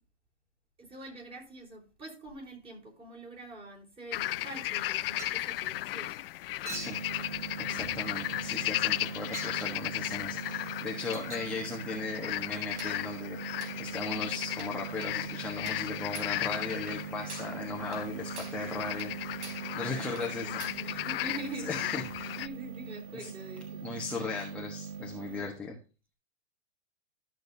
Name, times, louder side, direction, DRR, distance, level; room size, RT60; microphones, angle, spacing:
voice 1, 0.8-6.2 19.9-23.9, right 2 dB, 15° right, 4.2 m, -45 dB
sound 1, 4.1-22.5, left 15 dB, 55° left, 0.5 m, -36 dB
Chink clink, 5.2-5.5 6.7-7.0 8.0-8.2 9.3-9.6 11.1-11.5 12.8-13.0 13.6-13.8 14.6-14.8 15.0-15.2 15.7-15.9 16.1-16.4 16.9-17.0 17.3-17.6 17.9-18.1 18.4-18.6 19.0-19.1 19.4-19.7 20.2-20.3 20.6-20.9, right 2 dB, 80° right, 4.1 m, -44 dB
voice 2, 6.7-13.4 13.8-19.1 19.7-20.6 21.7-22.4 23.1-23.3 23.8-25.8, left 3 dB, 5° left, 1.3 m, -37 dB
sound 2, 6.7-25.5, right 6 dB, 65° right, 1.3 m, -42 dB
13.0 x 6.5 x 2.8 m
hypercardioid pair, 140°, 35 cm